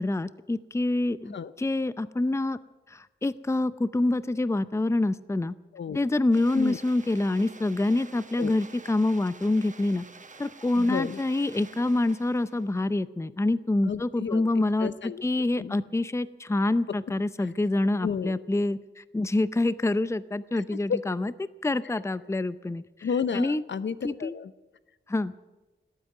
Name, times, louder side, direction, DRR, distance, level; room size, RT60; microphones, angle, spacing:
voice 1, 0.0-2.6 2.9-5.5 5.9-10.0 10.4-14.9 15.2-22.8 23.3-23.6 24.0-24.4 25.1-25.3, left 2 dB, 15° left, 15 dB, 0.6 m, -26 dB
sound 1, 6.3-12.8, right 4 dB, 40° right, 1.0 m, -49 dB
voice 2, 10.8-11.2 13.8-15.2 15.6-15.8 18.0-18.4 20.7-21.0 23.0-24.5, left 6 dB, 65° left, 15 dB, 0.7 m, -32 dB
17.5 x 8.8 x 9.2 m, 1.1 s
cardioid pair, 70°, 20 cm